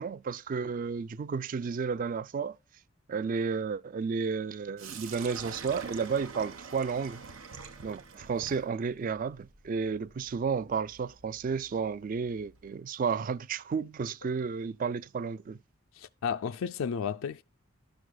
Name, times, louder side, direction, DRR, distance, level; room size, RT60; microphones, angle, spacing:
voice 1, 0.0-2.6 3.1-7.2 7.8-15.6, right 5 dB, 40° right, 0.3 m, -32 dB
Sink (filling or washing), 4.8-12.7, right 5 dB, 80° right, 1.0 m, -47 dB
voice 2, 15.9-17.4, left 7 dB, 70° left, 0.3 m, -33 dB
12.0 x 6.3 x 2.2 m
head